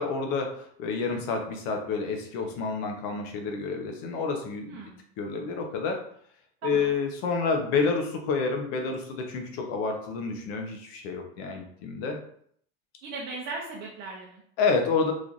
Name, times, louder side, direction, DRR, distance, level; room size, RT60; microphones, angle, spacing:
voice 1, 0.0-4.8 5.2-6.0 6.6-12.2 14.6-15.1, left 4 dB, 75° left, 3 dB, 0.8 m, -29 dB
voice 2, 4.7-5.0 6.6-6.9 13.0-14.4, right 3 dB, 40° right, -4 dB, 0.6 m, -37 dB
3.1 x 2.5 x 3.9 m, 0.64 s
cardioid pair, 180°, 30 cm